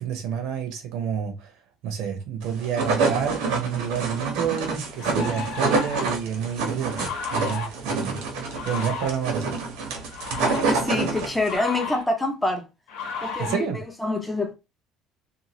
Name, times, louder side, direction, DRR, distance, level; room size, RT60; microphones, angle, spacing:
voice 1, 0.0-1.5 1.8-8.2 8.6-9.6 13.4-13.8, right 8 dB, 65° right, 0.8 m, -29 dB
sound 1, 2.5-11.6, right 4 dB, 85° right, 1.0 m, -27 dB
sound 2, 4.1-4.2 5.0-6.2 7.0-7.7 8.5-9.1 10.0-10.6 11.4-12.1 12.9-13.6, left 4 dB, 70° left, 0.8 m, -33 dB
voice 2, 10.4-12.6 13.2-13.7 14.0-14.5, left 2 dB, 5° left, 0.4 m, -26 dB
2.7 x 2.3 x 2.9 m
cardioid pair, 175°, 0 cm